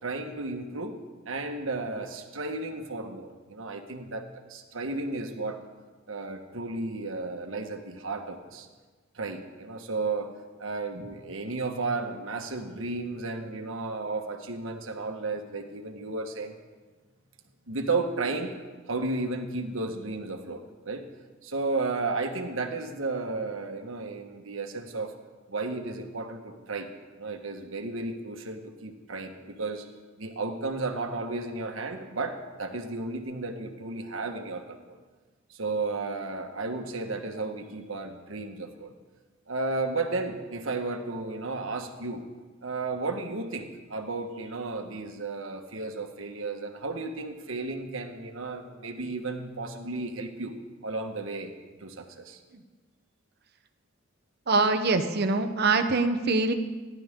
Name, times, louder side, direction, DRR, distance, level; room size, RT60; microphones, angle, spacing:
voice 1, 0.0-5.6 6.1-8.7 9.1-10.3 10.6-16.6 17.7-18.6 18.9-21.1 21.4-25.1 25.5-26.9 27.2-29.9 30.2-35.0 35.5-38.9 39.5-42.3 42.6-50.5 50.8-51.5 51.8-52.4, right 3 dB, 75° right, 4 dB, 1.5 m, -33 dB
voice 2, 54.5-56.5, right 3 dB, 55° right, 7 dB, 1.1 m, -24 dB
30.0 x 11.5 x 3.8 m, 1.4 s
head